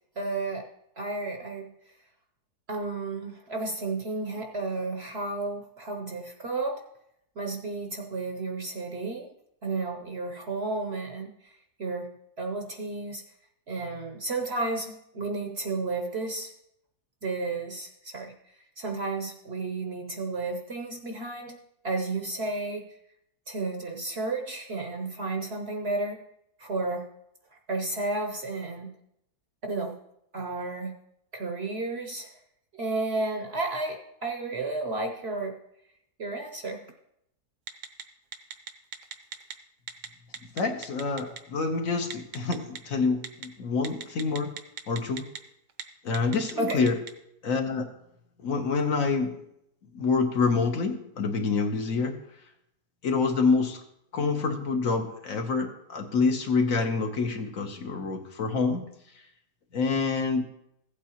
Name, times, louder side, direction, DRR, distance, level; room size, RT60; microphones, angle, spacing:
voice 1, 0.2-0.7 1.0-1.7 2.7-6.8 7.4-9.3 9.6-12.1 12.4-13.2 13.7-16.5 17.2-18.3 18.8-21.6 21.8-22.8 23.5-26.2 26.6-27.1 27.7-28.9 29.7-30.0 30.3-31.0 31.3-32.3 32.7-35.6 36.2-36.9 46.6-46.8, right 3 dB, 50° right, 3 dB, 0.8 m, -32 dB
Telephone, 37.7-38.0 38.3-39.5 39.9-40.1 40.3-41.4 42.1-42.8 43.2-43.5 43.8-45.4 45.7-45.8 46.1-47.1, right 7 dB, 75° right, 1.2 m, -37 dB
voice 2, 40.5-44.5 44.9-45.3 46.0-47.0 47.4-47.9 48.4-49.4 49.9-52.2 53.0-53.8 54.1-58.9 59.7-60.4, left 4 dB, 60° left, 4 dB, 1.3 m, -27 dB
15.5 x 8.4 x 2.9 m, 0.78 s
omnidirectional pair, 1.7 m